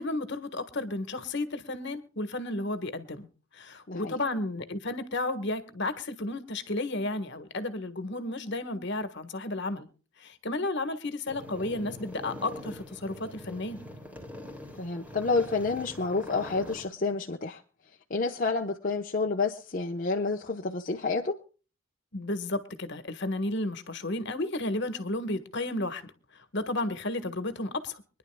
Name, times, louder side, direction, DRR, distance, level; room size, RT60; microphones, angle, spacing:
voice 1, 0.0-3.3 3.6-9.9 10.2-13.8 22.1-26.0 26.5-28.0, left 2 dB, 55° left, 1.5 m, -32 dB
voice 2, 3.9-4.2 14.8-17.6 18.1-21.4, left 3 dB, 40° left, 1.0 m, -29 dB
sound 1, 11.3-16.9, left 1 dB, 5° right, 2.6 m, -44 dB
25.0 x 11.0 x 2.3 m
head